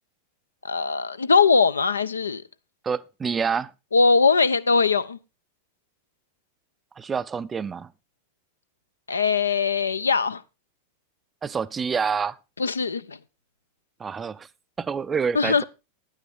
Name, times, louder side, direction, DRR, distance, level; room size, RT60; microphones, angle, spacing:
voice 1, 0.6-2.4 3.9-5.2 9.1-10.4 12.6-13.2 15.3-15.6, left 4 dB, 75° left, 0.6 m, -21 dB
voice 2, 2.8-3.7 7.0-7.9 11.4-12.4 14.0-14.5 14.8-15.6, right 6 dB, 20° right, 0.5 m, -27 dB
10.0 x 9.1 x 4.3 m
figure-of-eight pair, 90°, 0 cm